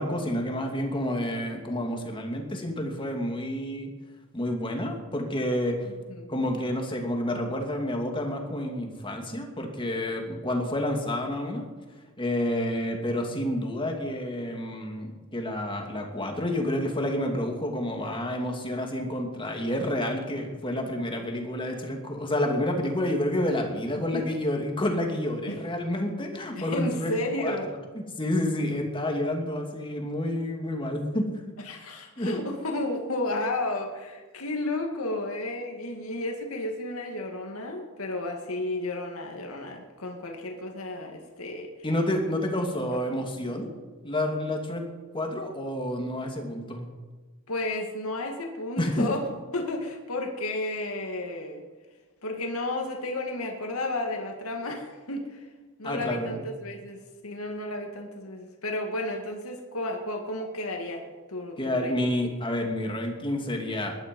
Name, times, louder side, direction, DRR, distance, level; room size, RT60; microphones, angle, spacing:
voice 1, 0.0-3.9 4.3-5.8 6.3-11.6 12.2-27.1 27.4-27.6 27.9-31.3 32.2-32.4 41.8-43.7 44.0-44.9 45.1-46.9 48.8-49.1 55.8-56.5 61.6-64.0, left 1 dB, 25° left, 2 dB, 2.6 m, -29 dB
voice 2, 5.8-6.3 24.1-24.2 25.5-25.6 26.6-27.7 31.6-41.7 47.5-49.2 49.5-51.6 52.2-55.5 55.8-62.1, left 2 dB, 85° left, 2 dB, 2.2 m, -32 dB
20.0 x 12.5 x 5.4 m, 1.4 s
head